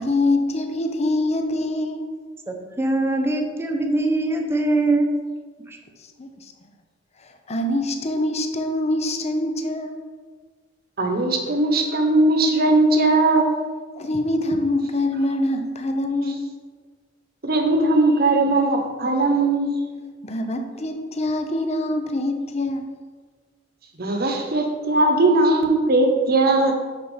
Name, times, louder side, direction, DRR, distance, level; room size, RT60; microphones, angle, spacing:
voice 1, 0.0-2.1 6.2-6.5 7.2-10.0 14.0-16.6 20.2-22.9, left 1 dB, 35° left, 5 dB, 0.7 m, -24 dB
voice 2, 2.5-5.1 5.7-5.8, right 2 dB, 15° right, 3 dB, 0.9 m, -22 dB
voice 3, 11.0-13.5 17.4-19.8 24.0-26.7, right 2 dB, 55° right, 4 dB, 1.1 m, -19 dB
6.0 x 5.9 x 5.6 m, 1.5 s
head